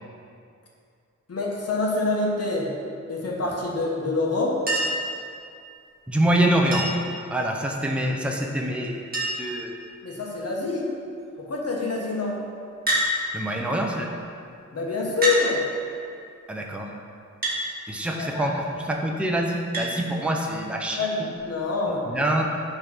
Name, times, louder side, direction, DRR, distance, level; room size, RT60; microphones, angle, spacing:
voice 1, 1.3-2.7 3.1-4.6 10.0-10.9 11.4-12.4 14.7-15.6 18.1-18.6 21.0-22.1, left 3 dB, 55° left, -2 dB, 1.5 m, -26 dB
Chink clink, 4.7-5.1 6.7-7.1 8.5-8.6 8.8-8.9 9.1-9.6 10.3-10.7 12.9-13.1 14.2-14.3 15.2-15.4 17.4-17.6 19.7-19.9 21.3-21.4, right 1 dB, 30° right, 2.1 m, -26 dB
voice 2, 6.1-6.9 7.3-9.0 9.4-9.7 13.3-14.1 16.5-16.9 17.9-21.1 22.1-22.4, right 1 dB, 5° right, 0 dB, 0.7 m, -25 dB
10.0 x 3.5 x 6.0 m, 2.4 s
wide cardioid pair, 135°, 29 cm